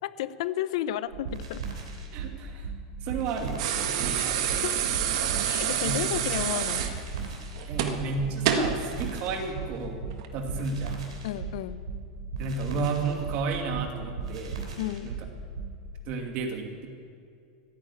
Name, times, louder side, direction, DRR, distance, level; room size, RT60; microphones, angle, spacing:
voice 1, 0.0-1.6 4.1-4.2 4.6-4.8 5.4-6.9 11.2-11.8 14.8-15.1, left 12 dB, 70° left, 15 dB, 0.7 m, -32 dB
sound 1, 1.1-15.8, right 5 dB, 90° right, 3.3 m, -37 dB
voice 2, 2.1-2.7 3.0-4.4 5.8-6.2 7.7-10.0 10.3-11.1 12.4-14.6 15.0-15.2 16.1-16.9, right 4 dB, 50° right, 3 dB, 2.5 m, -32 dB
sound 2, 3.6-8.8 10.1-10.3, right 9 dB, 65° right, 1.6 m, -28 dB
15.5 x 9.4 x 8.5 m, 2.3 s
supercardioid pair, 125°, 3 cm